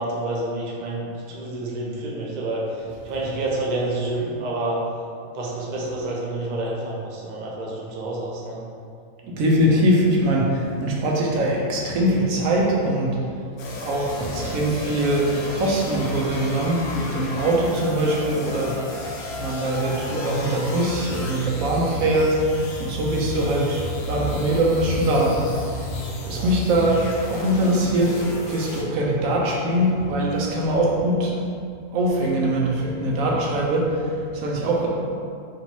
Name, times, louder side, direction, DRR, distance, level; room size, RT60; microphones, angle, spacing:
voice 1, 0.0-4.9 5.3-8.6 26.2-26.5, right 2 dB, 55° right, -3 dB, 0.5 m, -28 dB
voice 2, 9.2-13.2 13.8-19.1 19.4-26.0 26.3-31.3 31.9-34.9, right 1 dB, 75° right, -3 dB, 1.1 m, -22 dB
sound 1, 13.6-28.8, left 1 dB, 60° left, 0.7 m, -33 dB
3.0 x 2.8 x 4.4 m, 2.4 s
omnidirectional pair, 1.5 m